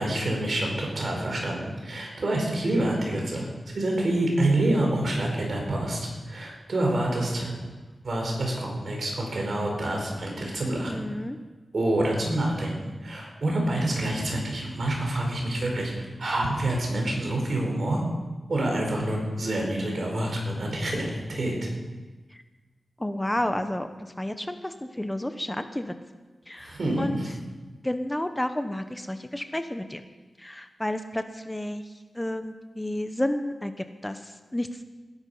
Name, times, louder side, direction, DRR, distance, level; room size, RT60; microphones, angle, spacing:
voice 1, 0.0-3.5 3.7-7.6 8.0-11.0 11.7-18.0 18.5-21.6 26.6-27.3, right 1 dB, 60° right, 0 dB, 4.8 m, -27 dB
voice 2, 10.9-11.4 23.0-23.9 24.2-25.9 26.5-27.2 27.8-30.0 30.4-31.8 32.1-34.8, left 1 dB, 15° left, 8 dB, 0.9 m, -31 dB
19.0 x 11.0 x 5.6 m, 1.3 s
wide cardioid pair, 75°, 0 cm